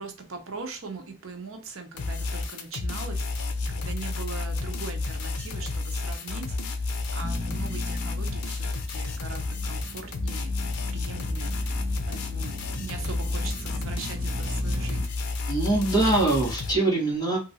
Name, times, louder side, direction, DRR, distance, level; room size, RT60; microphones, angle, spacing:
voice 1, 0.0-6.8 7.1-11.7 12.1-15.1, right 4 dB, 65° right, 5 dB, 0.7 m, -41 dB
sound 1, 2.0-16.7, left 3 dB, 85° left, 0.6 m, -31 dB
sound 2, 7.2-8.6 8.9-15.0, equal, 25° right, 0.7 m, -38 dB
voice 2, 15.5-17.4, right 2 dB, 20° left, -5 dB, 1.5 m, -23 dB
3.0 x 2.5 x 2.8 m, 0.30 s
head